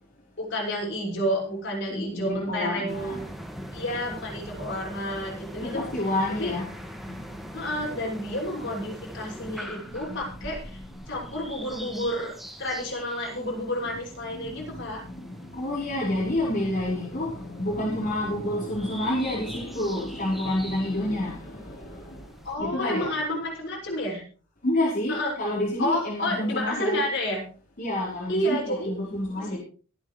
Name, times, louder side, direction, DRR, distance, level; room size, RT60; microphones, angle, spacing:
voice 1, 0.4-3.2 3.7-5.8 6.4-6.5 7.5-10.8 11.1-15.0 22.4-24.2 25.1-25.3 25.8-27.4 28.3-28.9 29.4-29.6, equal, 60° left, 6.3 m, -30 dB
voice 2, 1.9-3.2 3.6-3.7 5.6-6.6 7.0-7.5 9.4-10.5 14.3-22.2 22.6-23.1 24.6-27.0 27.8-29.6, left 1 dB, 45° left, 4.7 m, -29 dB
sound 1, 2.9-22.5, equal, ahead, 1.9 m, -43 dB
24.0 x 8.9 x 3.3 m
head